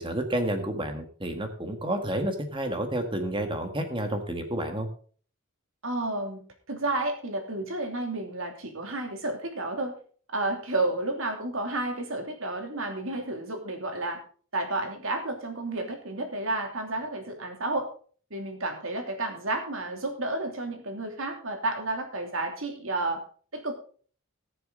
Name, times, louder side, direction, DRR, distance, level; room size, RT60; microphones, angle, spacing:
voice 1, 0.0-4.9, right 1 dB, 25° right, 6 dB, 1.6 m, -30 dB
voice 2, 5.8-6.4 6.7-10.0 10.3-14.2 14.5-17.9 18.3-23.2 23.5-23.7, right 2 dB, 65° right, 3 dB, 2.8 m, -31 dB
18.5 x 6.9 x 3.9 m, 0.43 s
head